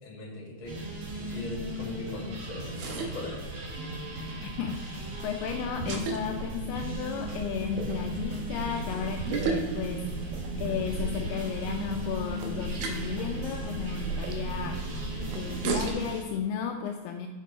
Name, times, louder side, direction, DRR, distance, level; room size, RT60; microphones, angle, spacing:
voice 1, 0.0-0.8 1.1-3.4, left 1 dB, 40° left, -3 dB, 2.2 m, -40 dB
sound 1, 0.6-15.9, right 3 dB, 75° right, 2.4 m, -36 dB
sound 2, 0.7-16.2, equal, 60° right, 1.6 m, -38 dB
voice 2, 4.4-14.8 15.3-17.3, left 7 dB, 80° left, 3 dB, 2.5 m, -34 dB
6.7 x 6.3 x 5.5 m, 1.2 s
omnidirectional pair, 4.8 m